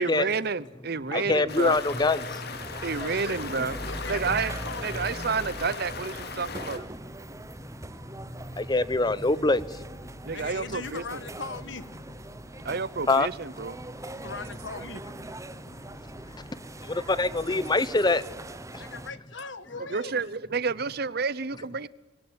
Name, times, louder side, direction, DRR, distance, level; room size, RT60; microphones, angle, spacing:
voice 1, 0.0-1.8 2.8-3.8 4.1-4.5 4.8-6.8 10.2-11.2 12.6-13.8 19.8-21.9, right 4 dB, 55° right, 0.8 m, -30 dB
voice 2, 1.1-2.4 7.9-8.0 8.6-10.1 13.1-13.3 13.8-14.1 15.5-18.2 18.7-18.8, left 2 dB, 25° left, 0.8 m, -26 dB
Stream, 1.5-6.8, left 4 dB, 60° left, 2.4 m, -38 dB
sound 1, 2.5-19.1, right 1 dB, 15° right, 1.0 m, -41 dB
voice 3, 2.9-3.4 3.9-5.0 10.3-11.9 14.1-15.0 18.8-20.2, left 4 dB, 75° left, 1.5 m, -39 dB
23.5 x 18.0 x 9.7 m
head